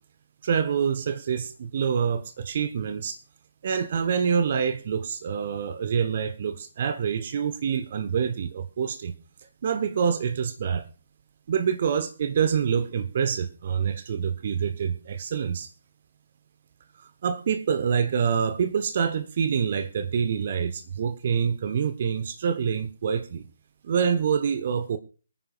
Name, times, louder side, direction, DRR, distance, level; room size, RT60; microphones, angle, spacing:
voice 1, 0.4-3.2 3.6-9.1 9.6-10.9 11.5-15.7 17.0-23.4 23.8-25.0, right 7 dB, 40° right, 1.1 m, -26 dB
24.0 x 9.7 x 2.5 m
figure-of-eight pair, 140°, 0 cm